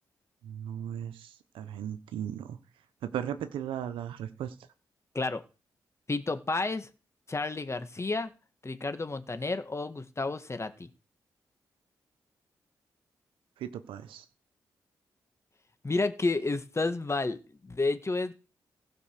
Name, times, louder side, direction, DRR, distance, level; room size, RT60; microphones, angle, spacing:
voice 1, 0.4-2.6 3.0-4.5 13.6-14.2, right 10 dB, 80° right, 11 dB, 1.0 m, -37 dB
voice 2, 6.1-6.9 7.3-8.3 8.6-10.9 15.8-18.3, left 3 dB, 35° left, 10 dB, 1.7 m, -31 dB
15.5 x 5.4 x 6.7 m, 0.34 s
supercardioid pair, 40°, 9 cm